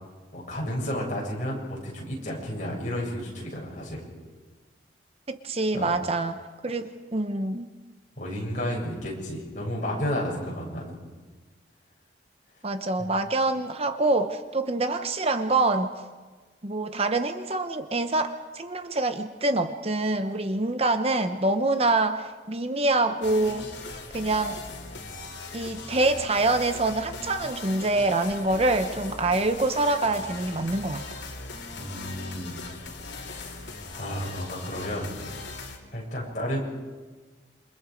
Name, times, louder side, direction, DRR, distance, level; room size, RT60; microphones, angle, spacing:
voice 1, 0.3-4.0 5.7-5.9 8.2-11.0 31.7-32.6 33.1-33.7 33.9-35.1 35.9-36.6, equal, 40° left, -3 dB, 7.4 m, -32 dB
voice 2, 5.3-6.3 6.6-7.7 12.6-15.9 16.6-23.7 24.1-24.6 25.5-31.0, right 2 dB, 35° right, 8 dB, 0.9 m, -25 dB
sound 1, 23.2-35.8, left 3 dB, 75° left, 3.3 m, -39 dB
28.0 x 26.0 x 5.2 m, 1.4 s
head